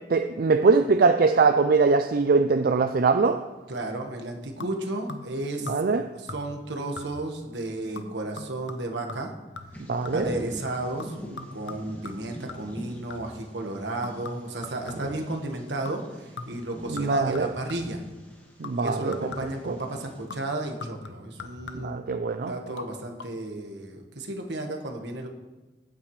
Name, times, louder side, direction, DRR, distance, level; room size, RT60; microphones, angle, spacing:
voice 1, 0.1-3.4 5.7-6.1 9.9-10.3 16.9-17.5 18.6-19.2 19.6-19.7 21.7-22.5, right 4 dB, 55° right, 8 dB, 0.4 m, -22 dB
voice 2, 3.7-5.7 6.2-9.3 10.1-11.1 11.5-18.0 18.8-22.0 22.4-25.3, right 2 dB, 75° right, 3 dB, 1.5 m, -33 dB
sound 1, 4.6-5.4 5.7-6.0 6.3-6.7 7.0-7.4 8.0-10.4 11.0-13.5 14.0-15.3 15.9-16.1 16.4-18.0 18.6-19.7 20.3-22.1 22.7-22.9 23.2-23.3, left 3 dB, 85° left, 0.9 m, -42 dB
Bird vocalization bird call bird song, 9.7-20.2, equal, 10° left, 1.9 m, -44 dB
14.5 x 9.0 x 3.2 m, 1.2 s
head